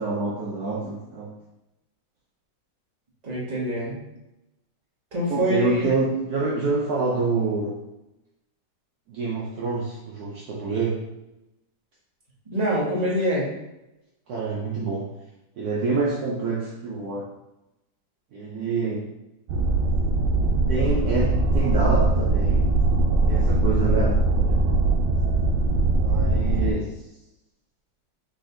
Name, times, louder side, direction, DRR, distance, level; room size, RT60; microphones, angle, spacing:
voice 1, 0.0-1.3 5.3-7.8 9.1-11.0 14.3-15.1 15.6-17.3 18.3-19.0 20.7-22.7 23.3-24.6 25.9-26.9, right 3 dB, 65° right, -4 dB, 1.1 m, -27 dB
voice 2, 3.2-4.0 5.1-5.9 12.5-13.5, equal, 25° right, -6 dB, 1.3 m, -24 dB
sound 1, 19.5-26.7, right 2 dB, 85° right, 1.3 m, -21 dB
3.9 x 3.4 x 3.8 m, 0.92 s
omnidirectional pair, 1.9 m